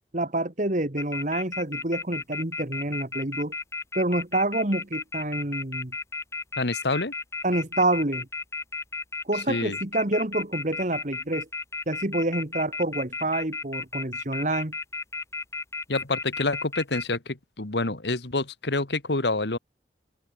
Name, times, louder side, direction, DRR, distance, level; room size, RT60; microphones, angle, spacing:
voice 1, 0.1-3.5 4.0-5.9 7.4-8.3 9.3-11.5 11.9-14.7, right 2 dB, 45° right, 2.1 m, -27 dB
sound 1, 1.0-17.2, left 3 dB, 15° left, 1.6 m, -33 dB
voice 2, 6.6-7.1 9.5-9.8 15.9-19.6, left 2 dB, 75° left, 1.8 m, -27 dB
head